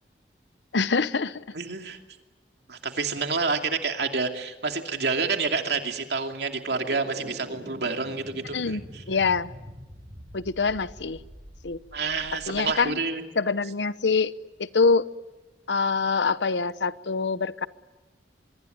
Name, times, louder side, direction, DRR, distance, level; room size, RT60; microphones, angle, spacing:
voice 1, 0.7-1.4 8.5-8.8 9.1-9.5 10.3-11.2 11.6-11.8 12.5-13.0 13.4-14.3 14.6-15.1 15.7-17.7, left 4 dB, 90° left, 15 dB, 0.9 m, -24 dB
voice 2, 1.5-2.0 2.7-9.0 11.9-13.2, right 4 dB, 70° right, 4 dB, 2.6 m, -28 dB
sound 1, 6.7-12.8, equal, 35° right, 5.7 m, -44 dB
24.5 x 23.5 x 9.4 m, 1.1 s
head